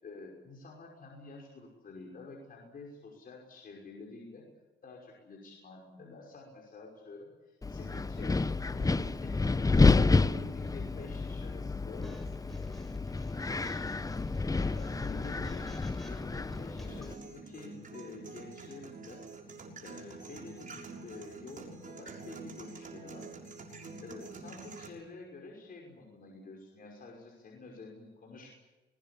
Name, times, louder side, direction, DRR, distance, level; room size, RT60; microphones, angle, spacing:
voice 1, 0.0-4.4 4.8-9.8 10.2-12.2 14.5-19.3 19.8-23.3 24.0-28.5, left 3 dB, 45° left, -1 dB, 6.0 m, -49 dB
Wind, 7.6-17.1, left 3 dB, 15° left, 0.8 m, -29 dB
sound 1, 12.0-17.2, equal, ahead, 7.0 m, -51 dB
sound 2, 16.9-24.9, right 3 dB, 40° right, 6.4 m, -47 dB
22.5 x 20.0 x 8.6 m, 1.2 s
cardioid pair, 90°, 20 cm